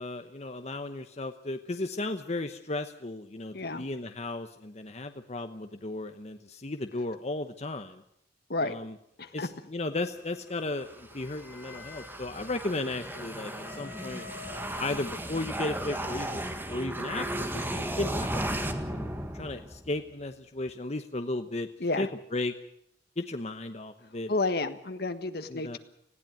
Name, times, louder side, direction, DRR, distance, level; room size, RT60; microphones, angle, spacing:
voice 1, 0.0-8.0 8.6-8.9 9.3-14.3 14.8-21.7 22.0-22.5 23.2-24.3 25.5-25.8, left 2 dB, 40° left, 8 dB, 1.0 m, -35 dB
voice 2, 3.5-3.8 8.5-8.8 9.2-9.5 21.8-22.1 24.3-25.8, left 2 dB, 60° left, 9 dB, 1.6 m, -30 dB
sound 1, 10.6-20.0, right 1 dB, 10° right, 1.7 m, -35 dB
sound 2, 10.8-15.6, left 5 dB, 80° left, 3.8 m, -49 dB
19.5 x 15.5 x 9.2 m, 0.73 s
head